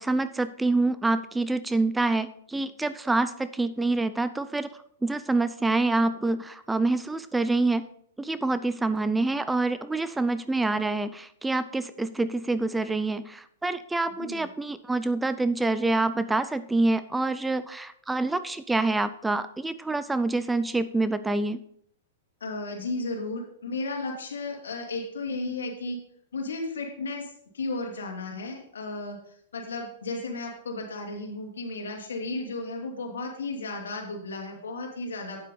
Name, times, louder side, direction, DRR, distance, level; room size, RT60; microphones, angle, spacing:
voice 1, 0.0-4.7 5.0-7.9 8.2-21.6, right 2 dB, 5° right, 13 dB, 0.4 m, -26 dB
voice 2, 14.1-14.5 22.4-26.0 26.3-35.5, left 2 dB, 90° left, 1 dB, 2.4 m, -34 dB
9.2 x 7.5 x 3.9 m, 0.66 s
hypercardioid pair, 125°, 0 cm